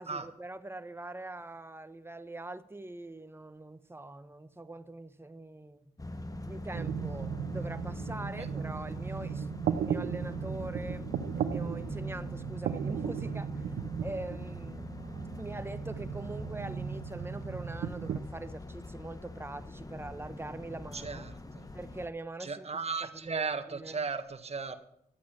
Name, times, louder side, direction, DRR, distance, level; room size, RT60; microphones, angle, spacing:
voice 1, 0.0-5.9 6.4-14.9 15.4-21.3 21.7-24.1, right 2 dB, 15° right, 11 dB, 1.1 m, -43 dB
sound 1, 6.0-22.1, left 2 dB, 25° left, 1.4 m, -43 dB
sound 2, 6.7-18.2, right 8 dB, 90° right, 0.6 m, -36 dB
voice 2, 20.9-21.7 22.4-24.8, right 4 dB, 45° right, 9 dB, 1.5 m, -36 dB
11.5 x 8.4 x 7.3 m, 0.74 s
cardioid pair, 55°, 15 cm